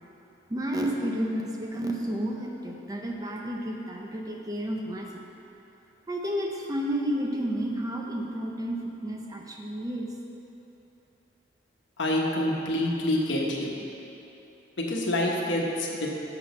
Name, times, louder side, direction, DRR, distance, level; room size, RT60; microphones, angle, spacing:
voice 1, 0.5-5.1 6.1-10.1, equal, 20° right, 0 dB, 0.6 m, -31 dB
voice 2, 12.0-13.8 14.8-16.1, left 1 dB, 70° left, -2 dB, 1.1 m, -27 dB
6.8 x 6.2 x 5.9 m, 2.9 s
head